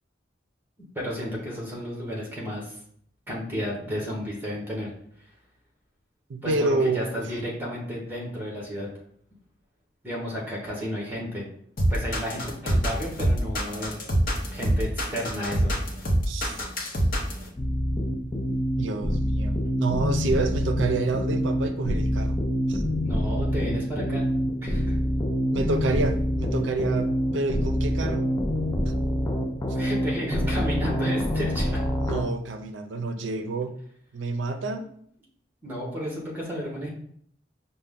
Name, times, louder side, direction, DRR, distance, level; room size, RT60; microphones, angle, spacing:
voice 1, 0.9-2.8 3.3-4.9 6.4-8.9 10.0-11.4 11.9-14.0 14.5-15.7 23.0-24.2 24.6-25.0 29.7-31.8 35.6-36.9, equal, 10° right, -3 dB, 1.2 m, -32 dB
voice 2, 6.3-7.3 16.3-16.6 18.7-22.4 22.7-22.8 25.5-28.2 28.9-29.0 32.0-33.7 34.1-34.9, right 3 dB, 85° right, 8 dB, 0.5 m, -28 dB
sound 1, 11.8-17.4, right 1 dB, 50° left, 0.8 m, -24 dB
sound 2, 17.6-32.2, equal, 15° left, 0.4 m, -26 dB
5.4 x 2.1 x 3.6 m, 0.63 s
head